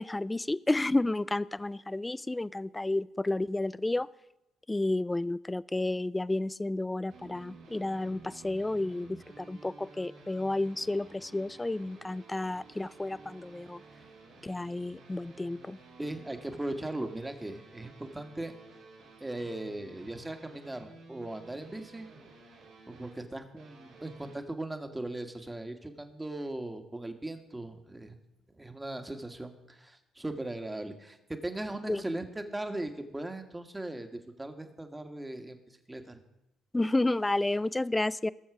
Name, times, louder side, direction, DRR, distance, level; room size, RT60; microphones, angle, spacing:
voice 1, 0.0-4.1 4.7-13.8 14.4-15.8 31.9-32.0 36.7-38.3, left 2 dB, 15° left, 19 dB, 0.3 m, -31 dB
sound 1, 7.1-24.4, right 3 dB, 75° right, 2.8 m, -54 dB
voice 2, 16.0-18.5 19.2-22.1 22.9-28.1 28.6-31.2 31.4-35.6 35.9-36.2, right 1 dB, 15° right, 7 dB, 1.6 m, -38 dB
19.5 x 7.1 x 4.8 m, 0.90 s
hypercardioid pair, 50°, 0 cm